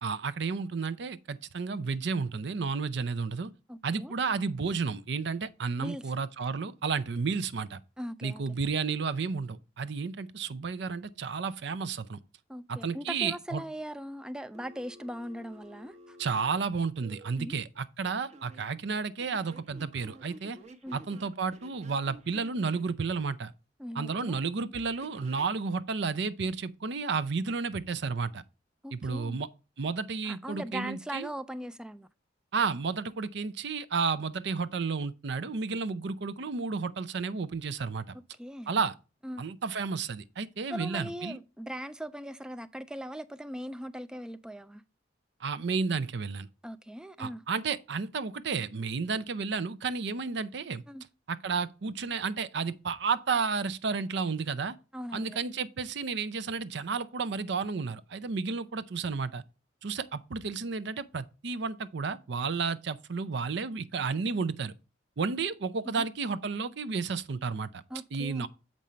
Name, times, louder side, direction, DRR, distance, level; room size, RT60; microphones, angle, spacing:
voice 1, 0.0-3.5 3.8-7.8 8.2-12.2 12.7-13.6 16.2-20.6 20.9-23.5 23.9-28.4 28.9-29.5 29.8-31.3 32.5-38.1 38.7-38.9 39.4-41.4 45.4-46.5 47.2-50.8 51.3-54.7 55.1-59.4 59.8-64.7 65.2-67.8 68.1-68.5, right 5 dB, 65° right, 0.5 m, -32 dB
voice 2, 3.7-4.1 5.8-6.0 8.0-8.4 12.5-16.2 17.4-17.6 20.8-21.0 23.8-24.4 28.8-29.4 30.2-32.1 38.1-38.7 39.2-39.4 40.7-44.8 46.6-47.4 50.9-51.0 54.9-55.4 65.9-66.0 67.9-68.5, equal, 5° right, 0.3 m, -40 dB
Telephone, 14.5-17.3 18.0-18.6 19.2-22.9 25.0-25.5, right 1 dB, 35° right, 1.0 m, -52 dB
7.4 x 5.3 x 4.3 m
head